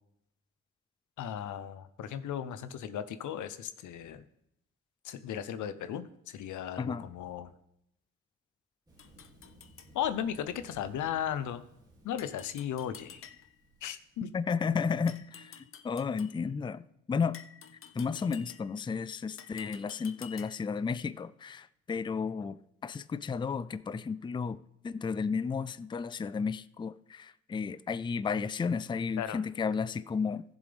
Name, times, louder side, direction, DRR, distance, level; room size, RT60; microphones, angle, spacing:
voice 1, 1.2-4.2 5.0-7.5 9.9-11.6 12.0-13.2 13.8-14.3 29.2-29.4, left 9 dB, 75° left, 0.8 m, -36 dB
Thunder, 8.9-14.7, right 1 dB, 15° right, 2.6 m, -59 dB
sound 1, 9.0-9.9 12.2-13.7 15.1-16.4 17.3-18.9 19.4-20.8, left 8 dB, 45° left, 0.7 m, -51 dB
voice 2, 14.3-17.4 17.9-24.6 24.8-30.4, left 5 dB, 15° left, 0.4 m, -33 dB
15.0 x 7.2 x 3.5 m
cardioid pair, 90°, 30 cm